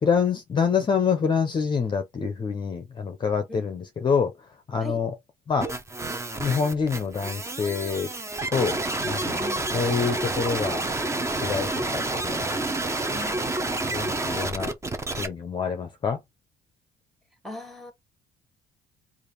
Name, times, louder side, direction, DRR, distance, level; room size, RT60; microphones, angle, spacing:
voice 1, 0.0-4.3 4.7-5.1 5.5-5.7 6.4-8.1 8.5-9.4 9.7-10.8 11.3-12.5 13.9-14.7 15.2-16.2, left 6 dB, 30° left, 0.6 m, -26 dB
sound 1, 5.6-15.3, right 2 dB, 15° right, 0.7 m, -29 dB
voice 2, 9.4-9.7 13.0-13.6 17.4-17.9, left 1 dB, ahead, 1.1 m, -39 dB
3.3 x 2.5 x 4.0 m
cardioid pair, 110°, 17 cm